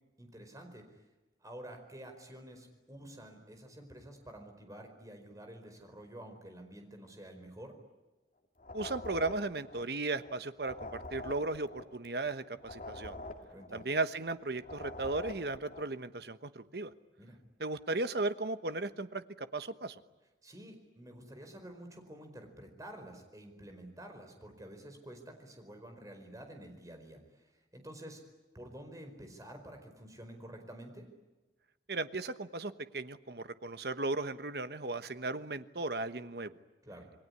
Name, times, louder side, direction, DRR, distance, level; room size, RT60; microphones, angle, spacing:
voice 1, 0.2-1.0 1.4-7.7 13.5-13.8 17.2-17.4 20.4-28.2 28.5-31.1 36.8-37.1, right 1 dB, 20° right, 5 dB, 4.8 m, -50 dB
sound 1, 8.6-10.3 10.6-14.3 14.6-16.0, left 2 dB, 45° left, 2.3 m, -46 dB
voice 2, 8.7-13.2 13.7-16.9 17.6-20.0 31.9-36.5, right 2 dB, 60° right, 11 dB, 1.2 m, -36 dB
28.0 x 21.0 x 9.8 m, 1.1 s
head